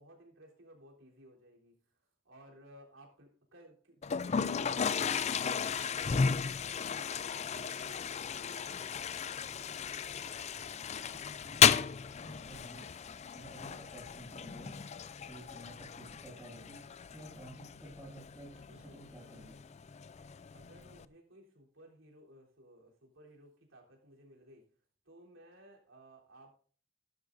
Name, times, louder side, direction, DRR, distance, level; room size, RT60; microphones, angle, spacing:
voice 1, 0.0-1.7 2.2-8.4 8.8-9.2 20.5-24.6 25.1-26.5, right 1 dB, 80° right, -1 dB, 3.7 m, -57 dB
Toilet flush, 4.0-21.0, left 7 dB, 35° left, 0.4 m, -34 dB
voice 2, 11.1-15.0 15.2-19.6, right 1 dB, 5° right, -4 dB, 7.2 m, -52 dB
15.5 x 12.0 x 2.6 m, 0.43 s
head